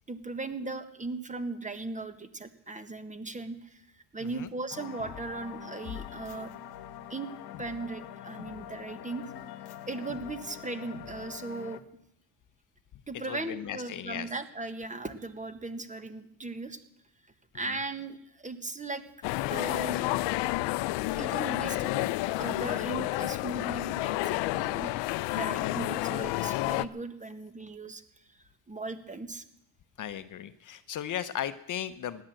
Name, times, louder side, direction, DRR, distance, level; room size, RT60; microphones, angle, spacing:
voice 1, 0.1-3.9 4.1-6.5 7.1-7.3 7.6-9.3 9.9-11.8 13.1-16.8 17.5-19.0 19.5-20.2 21.2-22.1 22.4-24.9 25.3-28.0 28.7-29.4, right 3 dB, 20° right, 11 dB, 1.4 m, -38 dB
sound 1, 4.7-11.8, left 10 dB, 65° left, 1.2 m, -44 dB
voice 2, 13.3-14.3 25.6-25.7 30.0-32.2, left 10 dB, 50° left, 13 dB, 0.8 m, -36 dB
sound 2, 19.2-26.8, left 18 dB, 90° left, 0.6 m, -30 dB
17.0 x 10.5 x 7.6 m, 0.78 s
cardioid pair, 105°, 41 cm